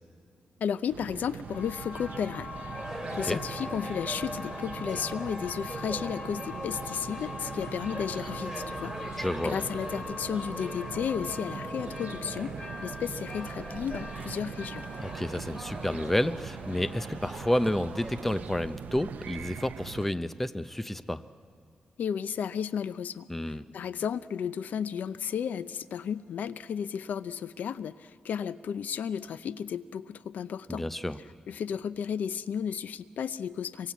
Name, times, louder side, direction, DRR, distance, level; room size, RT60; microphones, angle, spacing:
voice 1, 0.6-2.5 3.2-14.8 22.0-23.3 23.7-30.9 31.5-33.9, left 8 dB, 75° left, 15 dB, 0.6 m, -33 dB
sound 1, 0.9-20.1, right 7 dB, 75° right, 0.7 m, -42 dB
sound 2, 1.4-17.9, left 3 dB, 60° left, 6.4 m, -43 dB
sound 3, 2.5-18.5, right 1 dB, 10° right, 3.9 m, -43 dB
voice 2, 9.2-9.6 15.0-21.2 23.3-23.7 30.7-31.2, left 1 dB, 10° left, 12 dB, 0.6 m, -30 dB
26.0 x 23.5 x 8.3 m, 2.2 s
wide cardioid pair, 160°, 3 cm